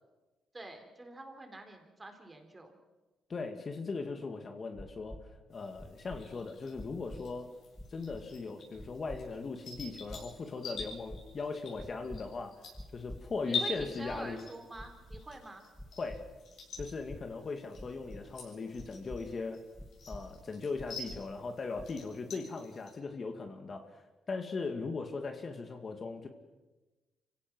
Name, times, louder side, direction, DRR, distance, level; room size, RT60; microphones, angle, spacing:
voice 1, 0.5-2.7 13.5-15.6, right 2 dB, 20° right, 5 dB, 3.8 m, -47 dB
voice 2, 3.3-5.2 5.5-7.5 7.9-12.5 12.9-14.4 16.0-16.2 16.8-19.6 20.1-26.3, left 4 dB, 40° left, 5 dB, 2.2 m, -39 dB
sound 1, 4.7-5.2 5.7-6.2 6.7-7.2 7.7-8.2 8.7-9.2 9.7-10.2 10.7-11.2 11.7-12.2 12.7-13.2 13.7-14.2 14.7-15.2 15.7-16.2 16.7-17.2 17.7-18.2 18.7-19.2 19.7-20.2 20.7-21.2 21.7-22.1, equal, 5° left, 2.5 m, -46 dB
sound 2, 5.5-23.0, left 4 dB, 65° left, 7.8 m, -46 dB
26.0 x 17.0 x 6.2 m, 1.2 s
cardioid pair, 90°, 0 cm